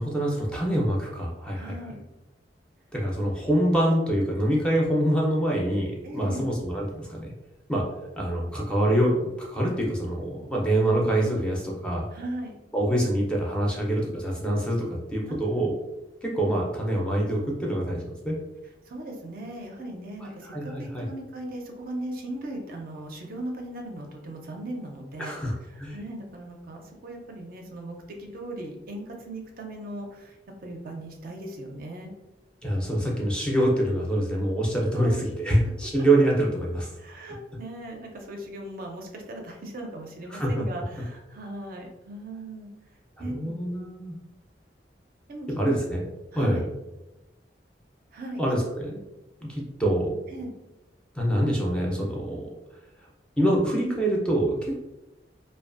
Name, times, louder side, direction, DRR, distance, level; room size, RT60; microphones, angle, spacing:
voice 1, 0.0-1.7 2.9-7.3 7.7-7.8 8.2-12.1 12.7-15.7 16.2-18.4 20.2-21.1 25.2-25.5 25.8-26.0 32.6-36.9 40.3-40.6 43.2-44.1 45.6-46.7 48.4-49.0 49.4-50.1 51.1-52.5 53.4-54.7, right 1 dB, 5° left, -2 dB, 0.4 m, -25 dB
voice 2, 1.5-2.0 6.0-6.4 12.1-12.5 15.3-15.7 18.8-25.3 25.7-32.1 34.9-35.2 37.0-42.7 43.2-43.5 45.3-45.8 46.3-46.6 48.1-48.4 50.3-50.5, right 1 dB, 55° right, 2 dB, 0.4 m, -38 dB
2.5 x 2.2 x 2.4 m, 0.99 s
head